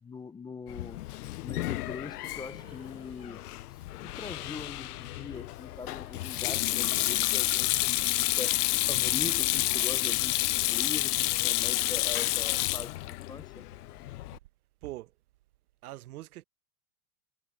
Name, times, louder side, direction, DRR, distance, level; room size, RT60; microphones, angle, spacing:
voice 1, 0.0-3.4 4.0-8.6 8.9-13.6, left 5 dB, 10° left, 0.6 m, -42 dB
Sink (filling or washing), 0.7-14.4, left 16 dB, 80° left, 0.7 m, -30 dB
Breathing, 2.0-11.7, right 14 dB, 35° right, 7.0 m, -60 dB
voice 2, 14.8-15.1 15.8-16.4, right 16 dB, 75° right, 1.1 m, -42 dB
hypercardioid pair, 130°, 45 cm